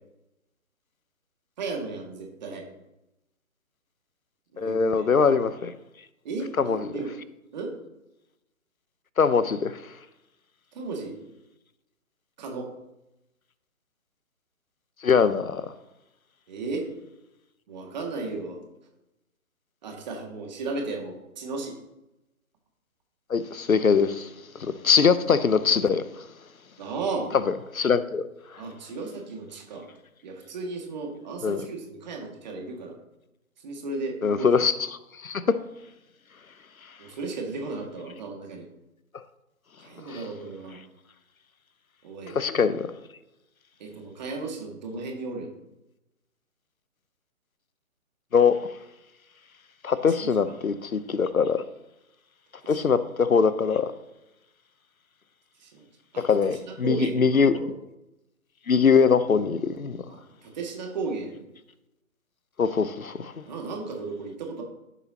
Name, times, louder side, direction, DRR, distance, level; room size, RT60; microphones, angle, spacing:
voice 1, 1.6-2.7 4.5-5.1 6.2-7.1 7.5-7.7 10.7-11.2 12.4-12.7 16.5-16.9 17.7-18.6 19.8-21.8 26.8-27.3 28.6-29.9 30.2-32.9 33.6-34.7 37.0-38.7 39.8-40.8 42.0-42.4 43.8-45.5 50.1-50.5 52.6-52.8 55.6-55.8 56.1-57.7 60.1-61.4 63.4-64.6, right 3 dB, 30° right, 2.1 m, -35 dB
voice 2, 4.6-5.7 6.6-6.8 9.2-9.8 15.0-15.6 23.3-24.3 24.6-26.0 27.7-28.3 31.4-31.6 34.2-34.7 35.2-35.6 40.1-40.2 42.3-42.9 48.3-48.6 49.8-51.6 52.7-53.9 56.2-57.5 58.7-60.0 62.6-63.3, left 5 dB, 75° left, 0.9 m, -22 dB
14.5 x 7.1 x 2.9 m
figure-of-eight pair, 145°, 42 cm